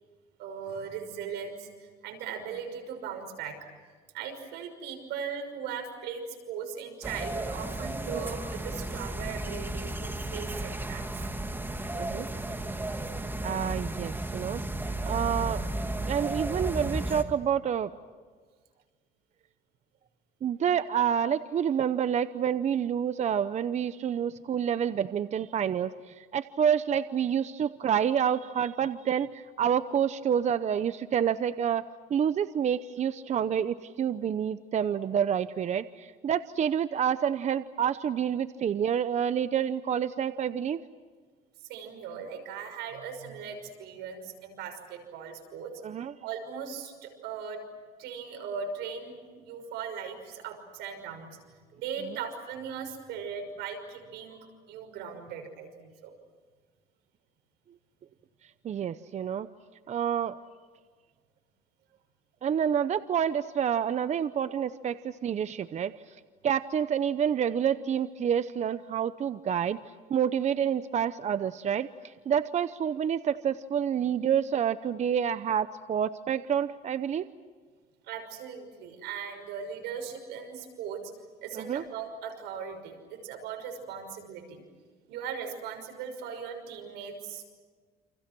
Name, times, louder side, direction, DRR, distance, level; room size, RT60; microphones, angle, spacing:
voice 1, 0.4-3.7 4.1-11.2 41.6-45.7 46.2-47.6 48.0-51.4 51.8-56.1 78.0-81.1 81.4-84.6 85.1-87.4, right 7 dB, 90° right, 6 dB, 6.1 m, -39 dB
sound 1, 7.0-17.2, right 1 dB, 10° right, 2.4 m, -34 dB
voice 2, 11.9-12.3 13.4-14.6 15.0-15.6 16.1-17.9 20.4-31.8 32.1-40.8 45.8-46.1 58.6-59.5 59.9-60.4 62.4-65.9 66.4-69.8 70.1-77.2 81.5-81.8, right 8 dB, 45° right, 13 dB, 0.8 m, -28 dB
29.5 x 27.5 x 6.2 m, 1.5 s
cardioid pair, 110°, 17 cm